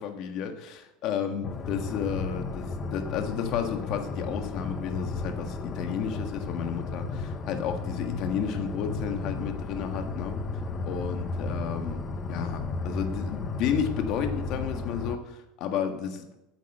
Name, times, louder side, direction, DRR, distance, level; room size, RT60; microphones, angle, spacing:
voice 1, 0.0-10.4 10.9-12.0 12.3-16.2, left 7 dB, 45° left, 6 dB, 1.5 m, -32 dB
sound 1, 1.4-15.2, left 3 dB, 25° left, 0.9 m, -34 dB
9.0 x 8.1 x 6.6 m, 0.91 s
supercardioid pair, 150°, 0 cm